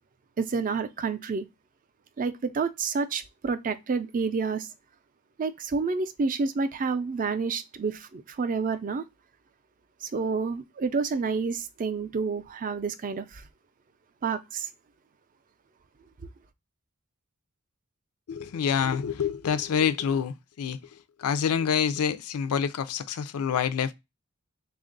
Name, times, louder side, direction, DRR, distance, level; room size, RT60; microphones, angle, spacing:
voice 1, 0.4-1.4 2.2-4.7 5.4-9.0 10.0-13.4 14.2-14.7, right 4 dB, 40° right, 0.4 m, -29 dB
voice 2, 18.3-20.8 21.2-23.9, left 7 dB, 85° left, 0.4 m, -27 dB
3.5 x 2.4 x 3.7 m
head